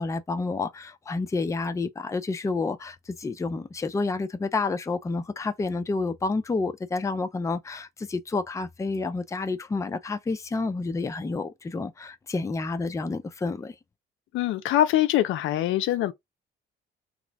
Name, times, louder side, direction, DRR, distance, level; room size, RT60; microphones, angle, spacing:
voice 1, 0.0-13.8, left 3 dB, 15° left, 0.4 m, -29 dB
voice 2, 14.3-16.1, left 13 dB, 80° left, 0.4 m, -23 dB
2.4 x 2.0 x 3.2 m
cardioid pair, 90°, 20 cm